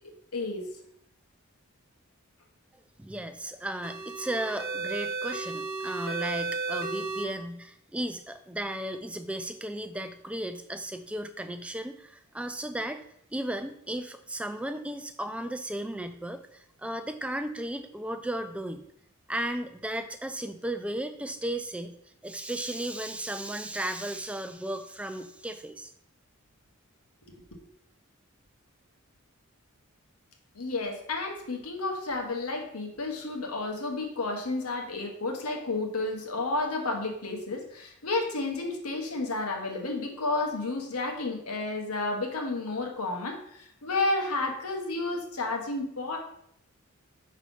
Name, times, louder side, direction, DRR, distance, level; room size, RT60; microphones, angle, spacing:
voice 1, 0.3-0.7 30.5-46.2, left 2 dB, 90° left, 2 dB, 1.2 m, -31 dB
voice 2, 3.0-13.0 13.3-18.8 19.3-22.0 22.2-25.9, right 1 dB, 5° right, 8 dB, 0.3 m, -35 dB
sound 1, 3.8-7.3, right 4 dB, 45° right, 0.8 m, -33 dB
6.0 x 3.3 x 5.4 m, 0.73 s
head